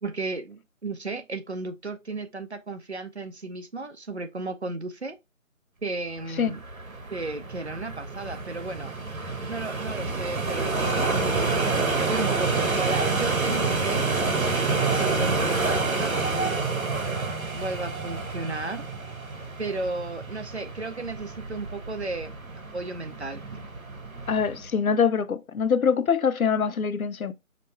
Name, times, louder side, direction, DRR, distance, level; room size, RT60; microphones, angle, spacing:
voice 1, 0.0-5.2 5.8-6.6 7.1-8.9 9.5-11.7 12.1-14.0 14.9-16.7 17.5-18.9 19.6-22.3 22.7-23.6, right 3 dB, 55° right, 0.6 m, -34 dB
sound 1, 6.4-24.7, right 3 dB, 80° right, 1.1 m, -28 dB
sound 2, 10.6-15.8, right 1 dB, 25° right, 1.4 m, -44 dB
voice 2, 24.3-27.3, left 6 dB, 90° left, 0.6 m, -24 dB
5.1 x 2.1 x 4.2 m
figure-of-eight pair, 175°, 41 cm